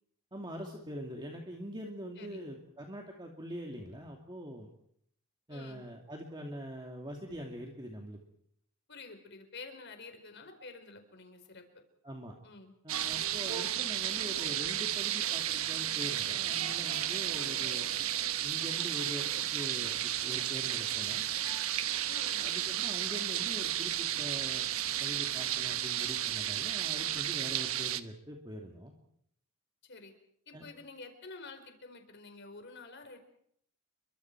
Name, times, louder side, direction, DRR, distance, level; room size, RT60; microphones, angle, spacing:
voice 1, 0.3-4.7 5.5-8.2 12.0-12.3 12.8-17.9 18.4-21.2 22.4-24.6 25.0-28.9 30.5-30.7, equal, 20° right, 1 dB, 2.4 m, -43 dB
voice 2, 5.5-5.9 8.9-11.6 12.4-12.7 17.3-17.6 22.1-22.5 29.8-30.1 30.5-33.2, left 3 dB, 55° left, 6 dB, 4.6 m, -49 dB
sound 1, 12.9-28.0, right 11 dB, 80° right, 1.1 m, -33 dB
30.0 x 23.5 x 4.7 m, 0.69 s
head